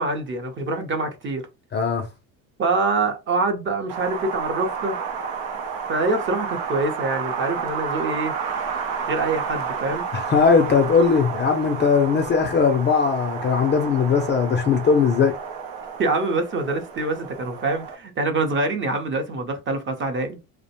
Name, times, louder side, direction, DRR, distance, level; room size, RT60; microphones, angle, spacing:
voice 1, 0.0-1.5 2.6-5.0 5.9-8.3 9.1-10.1 16.0-20.4, right 3 dB, 30° right, 0.6 m, -25 dB
voice 2, 1.7-2.0 10.1-15.3, left 5 dB, 30° left, 0.4 m, -19 dB
Wind, 3.9-17.9, right 6 dB, 85° right, 0.7 m, -31 dB
2.4 x 2.1 x 2.8 m
cardioid pair, 115°, 39 cm